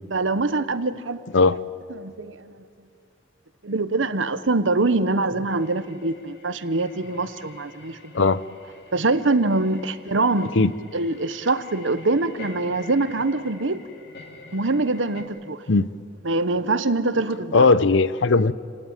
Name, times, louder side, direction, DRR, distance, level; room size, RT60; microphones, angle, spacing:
voice 1, 0.1-1.2 1.5-1.6 1.9-2.5 3.6-8.2 8.9-10.6 10.9-13.8 14.5-15.6 16.2-17.7, right 2 dB, 80° right, 13 dB, 1.1 m, -24 dB
sound 1, 5.5-15.2, left 3 dB, 55° left, 2.6 m, -47 dB
voice 2, 17.5-18.5, left 3 dB, 75° left, 17 dB, 0.7 m, -17 dB
28.5 x 18.0 x 9.0 m, 2.2 s
head